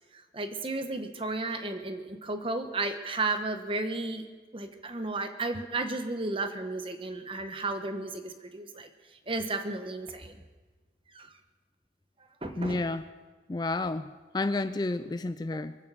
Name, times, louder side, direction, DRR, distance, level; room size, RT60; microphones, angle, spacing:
voice 1, 0.1-4.2 4.5-8.9 9.3-10.4 11.1-11.3 12.4-12.8, right 2 dB, 30° right, 7 dB, 1.2 m, -33 dB
voice 2, 12.4-13.1 13.5-15.8, left 2 dB, 25° left, 11 dB, 0.4 m, -31 dB
23.0 x 8.8 x 7.0 m, 1.4 s
head